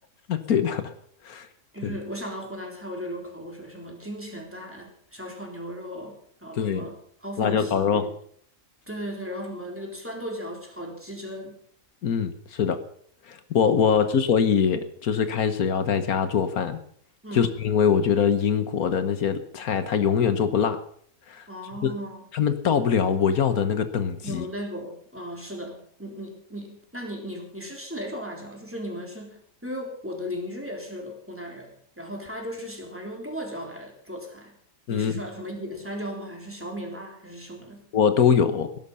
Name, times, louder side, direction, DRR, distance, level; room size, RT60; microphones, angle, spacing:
voice 1, 0.3-0.9 1.2-1.5 1.8-1.9 6.6-6.8 7.4-8.1 12.0-12.8 13.3-16.8 17.3-20.8 21.3-21.4 21.8-21.9 22.3-24.4 34.9-35.1 37.9-38.7, left 7 dB, 80° left, 10 dB, 1.6 m, -23 dB
voice 2, 1.7-8.1 8.9-11.6 13.9-14.1 17.2-17.5 21.5-22.2 24.2-34.5 34.9-37.8, equal, 10° right, 0 dB, 3.7 m, -36 dB
20.0 x 11.0 x 5.6 m, 0.63 s
omnidirectional pair, 1.5 m